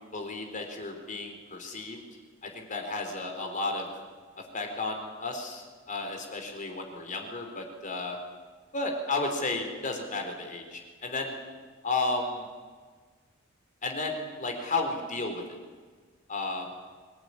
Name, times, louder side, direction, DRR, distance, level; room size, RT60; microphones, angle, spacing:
voice 1, 0.0-2.0 2.4-3.9 4.4-8.2 8.7-11.3 11.8-12.5 13.8-15.4 16.3-16.7, left 3 dB, 40° left, 3 dB, 4.1 m, -33 dB
24.5 x 18.5 x 10.0 m, 1.5 s
head